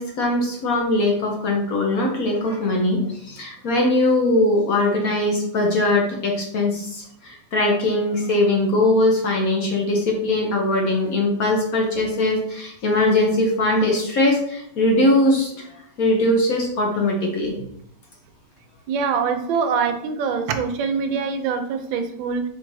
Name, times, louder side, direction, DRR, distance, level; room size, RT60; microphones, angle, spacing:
voice 1, 0.0-17.5, left 1 dB, 60° left, 0 dB, 1.0 m, -21 dB
voice 2, 18.9-22.4, right 5 dB, 80° right, 7 dB, 1.3 m, -24 dB
4.4 x 2.6 x 4.6 m, 0.72 s
omnidirectional pair, 2.1 m